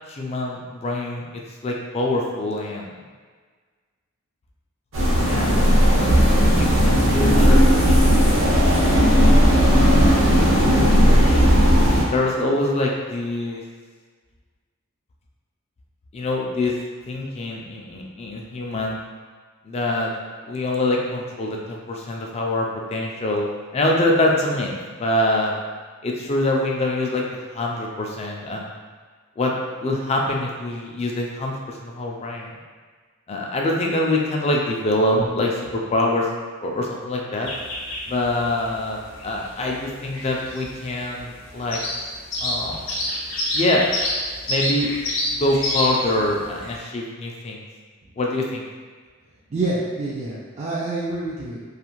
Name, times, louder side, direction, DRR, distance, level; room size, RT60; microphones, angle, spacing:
voice 1, 0.1-3.0 5.1-5.5 6.3-8.1 9.6-10.3 10.6-11.8 12.0-13.6 16.1-16.8 17.1-19.0 19.6-20.1 20.5-23.5 23.7-25.5 26.0-28.7 29.4-29.5 29.8-32.5 33.3-36.3 36.6-37.5 38.1-41.8 42.4-42.9 43.5-43.9 44.5-44.9 45.4-47.6 48.2-48.6, left 1 dB, 30° left, -1 dB, 0.4 m, -25 dB
sound 1, 4.9-12.0, equal, 70° right, 0.7 m, -16 dB
sound 2, 37.4-46.8, left 1 dB, 70° left, 0.7 m, -28 dB
voice 2, 49.5-51.7, right 2 dB, 35° right, -8 dB, 0.4 m, -27 dB
2.5 x 2.4 x 3.0 m, 1.5 s
head